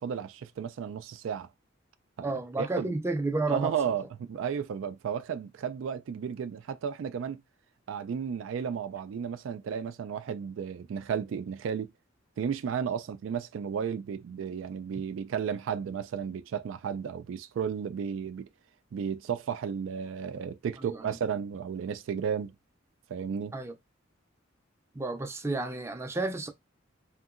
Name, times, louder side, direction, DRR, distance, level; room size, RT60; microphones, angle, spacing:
voice 1, 0.0-1.5 2.2-2.3 2.6-2.9 3.5-7.4 7.9-11.9 12.4-18.5 18.9-22.5 23.1-23.5, right 7 dB, 75° right, 0.3 m, -33 dB
voice 2, 2.2-3.7 20.8-21.1 23.5-23.7 24.9-26.5, right 2 dB, 15° right, 0.5 m, -31 dB
2.8 x 2.7 x 2.5 m
head